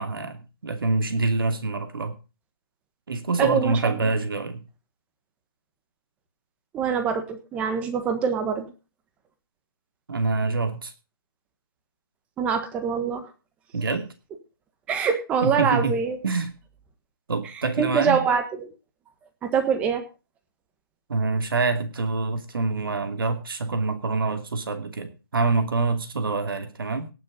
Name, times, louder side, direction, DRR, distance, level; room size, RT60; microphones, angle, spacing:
voice 1, 0.0-2.2 3.1-4.7 10.1-10.9 13.7-14.1 15.4-16.0 16.2-16.5 17.3-18.2 21.1-27.1, right 3 dB, 70° right, 7 dB, 2.8 m, -26 dB
voice 2, 3.4-4.1 6.7-8.7 12.4-13.2 14.9-16.2 17.8-18.7 19.4-20.0, right 6 dB, 10° right, 8 dB, 1.3 m, -24 dB
18.0 x 6.8 x 5.3 m, 0.32 s
hypercardioid pair, 165°, 12 cm